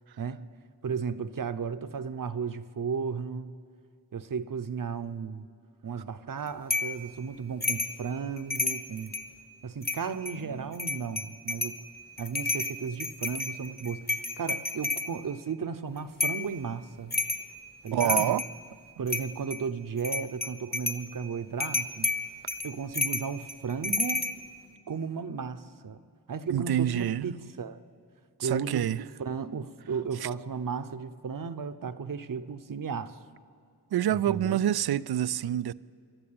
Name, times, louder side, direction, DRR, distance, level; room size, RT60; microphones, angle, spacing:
voice 1, 0.8-3.5 4.1-5.5 5.8-9.1 9.6-11.8 12.2-14.0 14.4-17.1 17.8-18.4 19.0-22.1 22.6-24.3 24.9-26.0 26.3-27.8 28.4-33.2 34.1-34.6, right 6 dB, 55° right, 0.9 m, -34 dB
sound 1, 6.7-7.0 7.6-8.0 8.4-9.3 9.8-10.3 10.7-11.8 12.2-15.1 16.2-16.5 17.1-17.5 17.9-18.6 19.1-19.6 20.0-21.1 21.6-24.3, left 2 dB, 25° left, 1.2 m, -31 dB
voice 2, 17.9-18.4 19.0-19.1 26.5-27.3 28.4-29.0 30.2-30.3 33.9-35.7, right 11 dB, 75° right, 0.5 m, -27 dB
26.5 x 12.0 x 8.7 m
wide cardioid pair, 105°, 39 cm